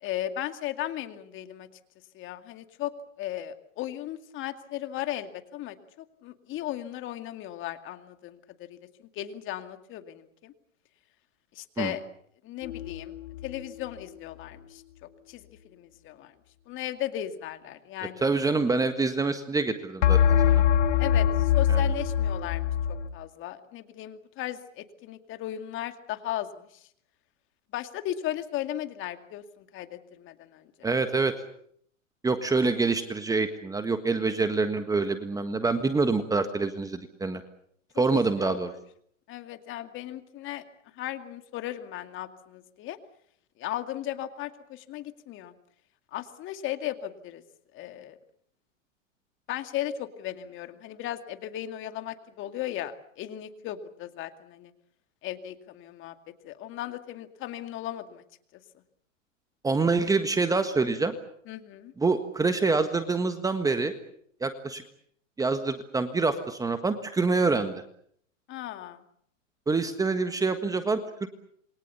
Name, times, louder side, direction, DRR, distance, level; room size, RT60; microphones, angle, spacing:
voice 1, 0.0-1.7 2.1-5.8 6.2-10.5 11.5-12.0 12.4-13.1 13.4-16.3 16.7-18.3 21.0-26.9 27.7-30.9 37.9-38.7 39.3-40.6 40.9-43.0 43.6-45.5 46.1-47.4 47.7-48.2 49.5-54.7 55.2-56.1 56.4-58.2 61.5-61.9 68.5-69.0, left 12 dB, 30° left, 8 dB, 2.3 m, -36 dB
sound 1, 12.6-13.5 20.0-23.0, left 9 dB, 60° left, 2.4 m, -23 dB
voice 2, 18.2-20.6 21.7-21.8 30.8-31.3 32.2-37.4 38.0-38.7 59.6-61.1 62.0-63.9 64.4-64.8 65.4-67.8 69.7-71.3, right 3 dB, 10° right, 9 dB, 1.5 m, -26 dB
28.0 x 23.0 x 7.0 m, 0.67 s
hypercardioid pair, 120°, 39 cm